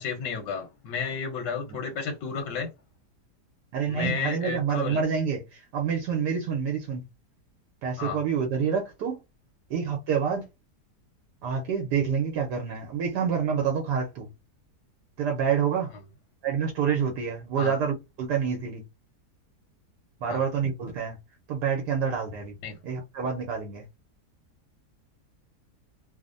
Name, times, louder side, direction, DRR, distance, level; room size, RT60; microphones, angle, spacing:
voice 1, 0.0-2.7 3.9-5.0 8.0-8.2 17.6-17.8 20.3-20.4 22.6-22.8, left 5 dB, 90° left, 1.4 m, -32 dB
voice 2, 3.7-7.0 7.8-9.2 9.7-10.5 11.4-14.3 15.2-15.9 16.4-18.8 20.2-21.2 21.5-22.6 22.8-23.8, right 7 dB, 80° right, 1.3 m, -27 dB
3.2 x 2.0 x 2.5 m
omnidirectional pair, 1.8 m